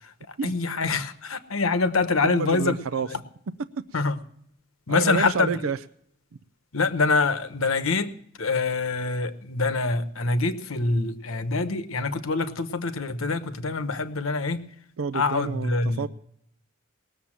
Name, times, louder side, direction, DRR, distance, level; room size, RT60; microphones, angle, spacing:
voice 1, 0.0-2.7 3.1-3.2 3.9-4.2 4.9-5.5 6.7-8.1 8.4-14.6 15.1-16.1, left 3 dB, 70° left, 10 dB, 1.1 m, -25 dB
voice 2, 2.2-3.1 3.9-4.0 4.9-5.8 15.0-16.1, right 5 dB, 70° right, 11 dB, 0.5 m, -29 dB
19.5 x 7.0 x 7.4 m, 0.70 s
head